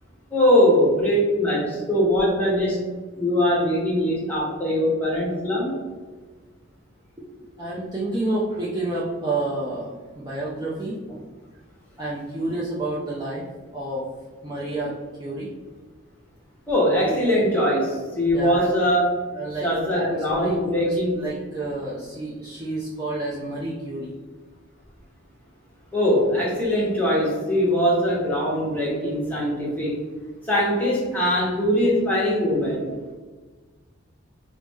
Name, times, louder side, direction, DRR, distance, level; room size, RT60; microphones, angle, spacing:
voice 1, 0.3-2.8 3.2-5.8 16.7-19.2 19.6-21.2 25.9-30.0 30.4-32.9, equal, 10° left, -6 dB, 0.9 m, -21 dB
voice 2, 7.2-11.3 12.0-13.5 13.7-14.0 14.4-15.5 16.9-17.2 18.3-18.7 19.3-19.7 19.9-24.1, right 2 dB, 20° right, -7 dB, 0.5 m, -30 dB
4.6 x 2.1 x 3.4 m, 1.4 s
head